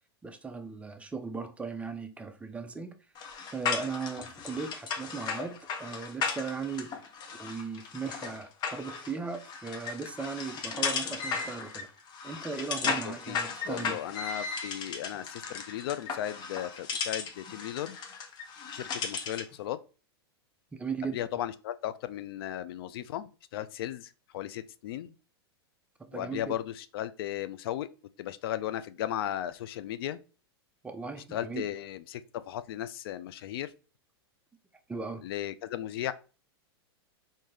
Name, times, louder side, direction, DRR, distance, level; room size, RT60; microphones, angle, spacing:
voice 1, 0.2-3.0 3.5-6.9 7.3-11.9 12.2-14.0 20.7-21.2 26.1-26.6 30.8-31.7 34.9-35.3, right 5 dB, 10° right, 0.4 m, -37 dB
sound 1, 3.1-19.5, left 5 dB, 35° left, 0.7 m, -36 dB
voice 2, 12.8-13.4 13.7-18.0 18.7-19.8 21.1-25.1 26.1-27.9 28.2-30.2 31.3-33.7 35.2-36.1, left 12 dB, 65° left, 0.4 m, -36 dB
3.8 x 2.6 x 3.2 m
hypercardioid pair, 115°, 13 cm